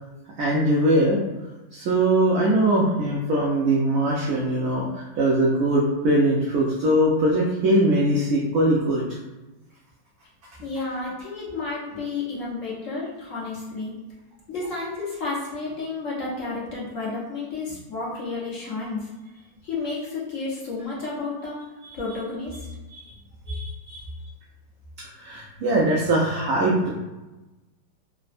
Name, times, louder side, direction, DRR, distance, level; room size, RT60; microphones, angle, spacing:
voice 1, 0.4-1.2 1.7-9.0 22.9-23.1 23.5-24.0 25.2-26.9, right 1 dB, 70° right, -4 dB, 0.8 m, -21 dB
voice 2, 10.6-14.0 14.5-19.1 19.6-21.6 21.9-22.7, left 3 dB, 55° left, -6 dB, 0.9 m, -31 dB
3.4 x 2.0 x 2.5 m, 1.1 s
omnidirectional pair, 2.0 m